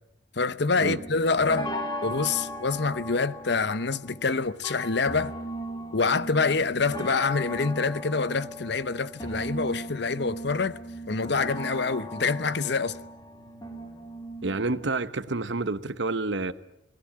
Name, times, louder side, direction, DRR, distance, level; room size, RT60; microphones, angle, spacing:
voice 1, 0.4-1.7 2.0-5.3 5.9-10.8 11.1-13.0, left 4 dB, 65° left, 0.9 m, -26 dB
sound 1, 0.8-14.9, equal, 20° left, 3.2 m, -37 dB
voice 2, 14.4-16.5, right 3 dB, 70° right, 1.0 m, -29 dB
28.0 x 19.0 x 8.7 m
head